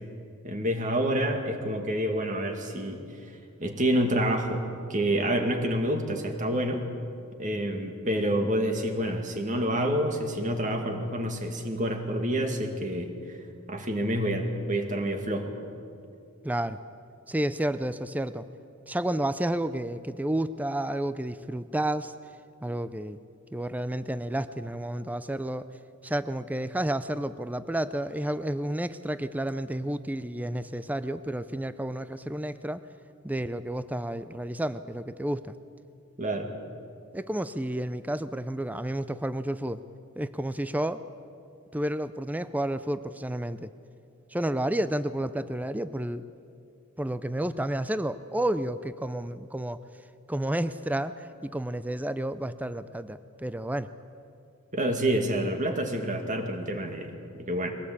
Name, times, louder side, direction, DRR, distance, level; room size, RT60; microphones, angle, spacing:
voice 1, 0.4-6.8 7.4-13.4 13.7-15.5 36.2-36.5 54.7-57.1 57.4-57.7, right 1 dB, 35° right, 4 dB, 2.2 m, -28 dB
voice 2, 16.4-16.8 17.3-18.5 18.9-22.1 22.6-23.2 23.5-25.7 26.0-32.8 33.2-35.6 37.1-39.8 40.2-41.0 41.7-43.7 44.3-46.2 47.0-49.8 50.3-53.9, right 1 dB, 5° right, 13 dB, 0.4 m, -31 dB
22.5 x 17.5 x 8.6 m, 2.5 s
head